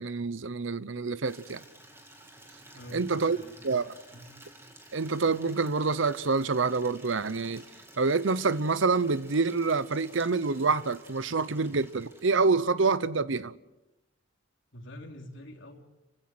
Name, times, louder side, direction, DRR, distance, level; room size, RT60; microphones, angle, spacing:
voice 1, 0.0-1.6 2.9-3.4 3.6-3.9 4.9-7.6 8.0-13.5, right 4 dB, 70° right, 0.8 m, -27 dB
Water tap faucet / Liquid, 1.2-12.8, right 1 dB, 10° right, 2.9 m, -53 dB
voice 2, 2.7-3.5 4.1-4.4 14.7-15.8, equal, 65° left, 3.3 m, -46 dB
28.5 x 16.0 x 7.9 m
head